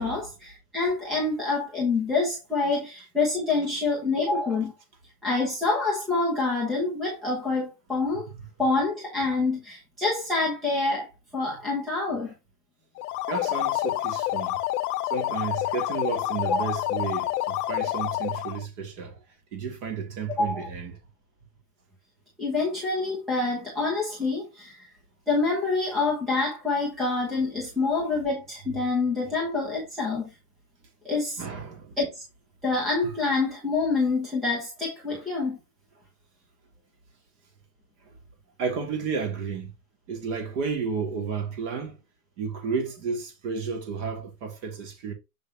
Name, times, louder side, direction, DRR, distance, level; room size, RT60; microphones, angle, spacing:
voice 1, 0.0-4.7 5.2-8.3 8.6-11.1 11.3-12.3 16.5-16.7 20.4-20.7 22.4-24.8 25.3-30.3 31.0-31.4 32.0-32.2 32.6-35.6, left 3 dB, ahead, 0.4 m, -26 dB
sound 1, 13.0-18.7, left 15 dB, 70° left, 0.8 m, -28 dB
voice 2, 13.3-14.6 15.1-19.2 19.5-21.0 31.4-32.0 33.0-33.1 38.6-39.7 40.1-42.0 42.4-45.1, right 5 dB, 45° right, 3.3 m, -32 dB
6.8 x 5.4 x 3.1 m
supercardioid pair, 175°, 47 cm